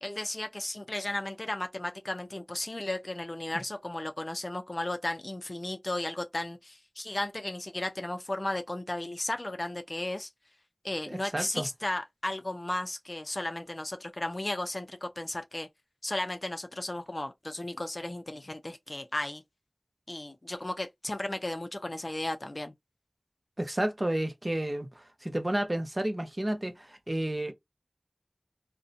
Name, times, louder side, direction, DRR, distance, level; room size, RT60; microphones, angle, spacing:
voice 1, 0.0-10.3 10.8-15.7 16.0-19.4 20.1-22.7, left 1 dB, 50° left, 0.4 m, -35 dB
voice 2, 11.1-11.7 23.6-27.5, right 1 dB, 40° right, 0.6 m, -31 dB
2.7 x 2.1 x 2.5 m
wide cardioid pair, 45°, 0 cm